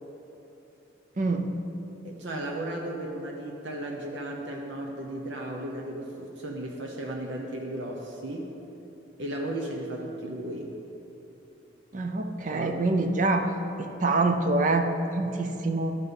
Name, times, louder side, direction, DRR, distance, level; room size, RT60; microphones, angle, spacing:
voice 1, 1.2-1.6 11.9-13.5 13.8-15.9, right 2 dB, 40° right, 5 dB, 0.5 m, -26 dB
voice 2, 2.0-8.5 9.2-10.7 12.5-12.8, right 1 dB, 70° right, 0 dB, 0.8 m, -35 dB
12.0 x 4.2 x 5.3 m, 3.0 s
head